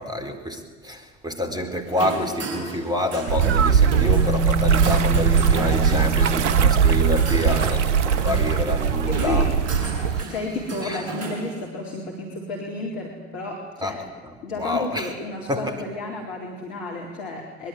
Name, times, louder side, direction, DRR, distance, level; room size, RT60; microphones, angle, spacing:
voice 1, 0.0-9.5 10.1-10.3 10.8-11.1 13.8-15.1 15.5-15.8, left 1 dB, 10° right, 7 dB, 4.2 m, -28 dB
sound 1, 1.9-11.6, right 3 dB, 40° right, 6.5 m, -34 dB
sound 2, 3.3-10.2, right 7 dB, 65° right, 0.9 m, -20 dB
sound 3, 4.1-13.5, left 2 dB, 15° left, 2.2 m, -33 dB
voice 2, 9.1-9.5 10.3-14.0 14.4-17.7, left 3 dB, 55° left, -1 dB, 4.3 m, -32 dB
23.5 x 22.0 x 9.7 m, 1.4 s
figure-of-eight pair, 70°, 38 cm